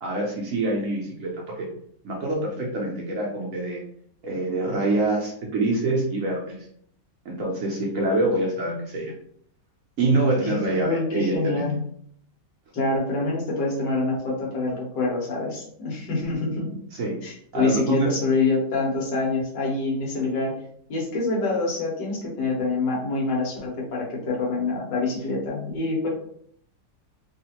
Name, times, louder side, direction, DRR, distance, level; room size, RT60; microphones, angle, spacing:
voice 1, 0.0-1.7 2.0-3.8 4.2-6.6 7.2-9.1 10.0-11.7 16.9-17.2 17.5-18.1, right 2 dB, 60° right, -2 dB, 0.9 m, -25 dB
voice 2, 10.4-11.8 12.7-16.7 17.2-20.5 20.9-26.1, left 3 dB, 80° left, -4 dB, 1.7 m, -26 dB
3.5 x 2.4 x 2.9 m, 0.65 s
omnidirectional pair, 1.9 m